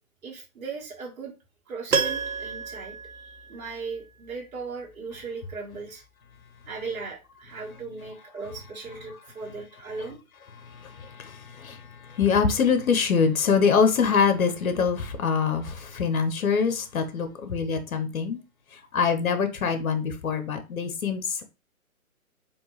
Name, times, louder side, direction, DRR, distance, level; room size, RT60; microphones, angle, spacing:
voice 1, 0.2-1.3 1.7-6.0 6.7-10.2, right 4 dB, 70° right, 1.4 m, -38 dB
Piano, 1.9-4.0 4.3-4.4, right 5 dB, 85° right, 0.9 m, -30 dB
voice 2, 10.6-18.4 18.7-21.4, left 6 dB, 70° left, 0.8 m, -24 dB
3.6 x 2.6 x 3.0 m
hypercardioid pair, 145°, 43 cm